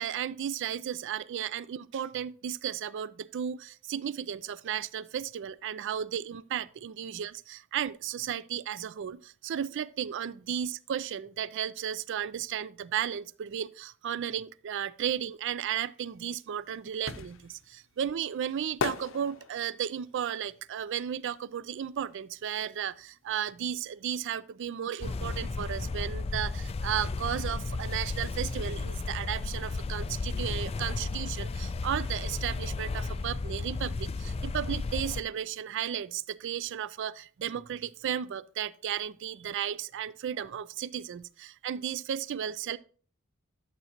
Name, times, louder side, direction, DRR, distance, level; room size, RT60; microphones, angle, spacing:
voice 1, 0.0-42.8, right 9 dB, 60° right, 0.4 m, -34 dB
sound 1, 16.2-22.0 22.3-23.9 24.2-24.3, left 5 dB, 65° left, 0.6 m, -39 dB
sound 2, 25.0-35.2, left 3 dB, 30° left, 0.3 m, -33 dB
11.5 x 7.5 x 2.9 m
head